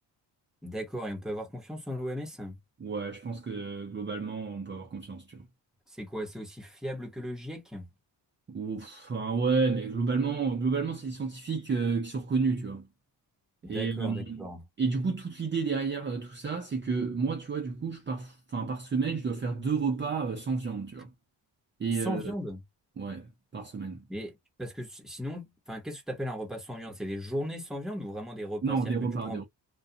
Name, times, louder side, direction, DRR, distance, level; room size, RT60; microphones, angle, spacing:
voice 1, 0.6-2.6 5.9-7.9 13.6-14.7 22.0-22.6 24.1-29.4, equal, ahead, 0.9 m, -37 dB
voice 2, 2.8-5.5 8.5-12.9 13.7-14.5 14.8-21.1 21.8-22.2 23.0-24.0 28.6-29.4, right 4 dB, 25° right, 0.6 m, -31 dB
2.4 x 2.2 x 2.6 m
cardioid pair, 115°, 44 cm